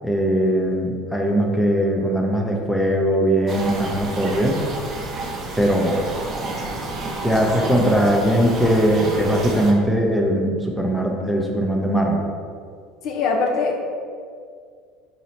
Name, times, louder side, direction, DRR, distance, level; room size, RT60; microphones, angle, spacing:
voice 1, 0.0-4.6 5.6-6.1 7.2-12.2, equal, ahead, 0 dB, 0.6 m, -20 dB
sound 1, 3.5-9.7, right 2 dB, 40° right, 0.7 m, -30 dB
voice 2, 13.0-13.8, left 4 dB, 60° left, 1 dB, 0.6 m, -22 dB
4.0 x 2.8 x 4.2 m, 2.1 s
hypercardioid pair, 85°, 0 cm